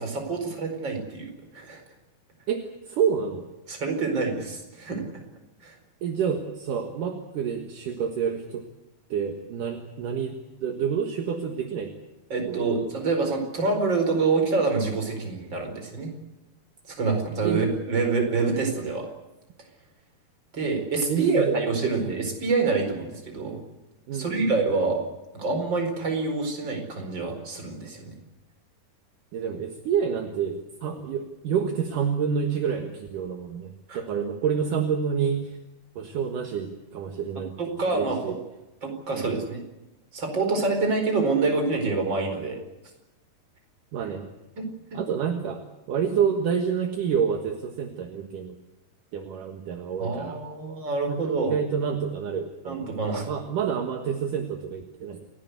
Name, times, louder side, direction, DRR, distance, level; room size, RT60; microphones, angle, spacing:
voice 1, 0.0-1.8 3.7-5.0 5.6-5.7 12.3-16.1 16.9-19.1 20.5-23.6 24.1-25.0 25.3-28.1 33.9-34.0 37.6-38.3 38.8-39.6 40.1-42.6 44.6-45.0 50.0-51.6 52.7-53.3, right 4 dB, 30° right, 4 dB, 5.1 m, -26 dB
voice 2, 2.5-3.5 6.0-8.7 9.1-11.9 12.5-12.7 17.4-17.7 21.1-22.2 24.1-24.5 29.3-35.6 36.0-37.6 37.9-38.4 39.1-39.3 43.9-44.3 44.9-48.6 49.1-50.4 51.1-53.0 53.3-55.2, right 7 dB, 65° right, 5 dB, 3.0 m, -28 dB
28.5 x 17.5 x 8.3 m, 1.0 s
omnidirectional pair, 4.3 m